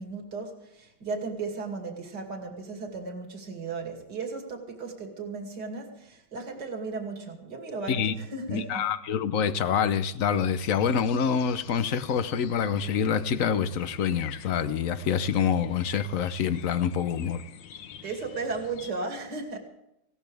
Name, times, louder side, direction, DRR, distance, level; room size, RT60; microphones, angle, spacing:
voice 1, 0.0-8.8 18.0-19.6, right 4 dB, 60° right, 3.1 m, -35 dB
voice 2, 8.5-17.4, left 7 dB, 55° left, 1.1 m, -26 dB
sound 1, 10.3-18.9, left 9 dB, 70° left, 1.6 m, -46 dB
20.0 x 17.0 x 3.5 m
omnidirectional pair, 2.1 m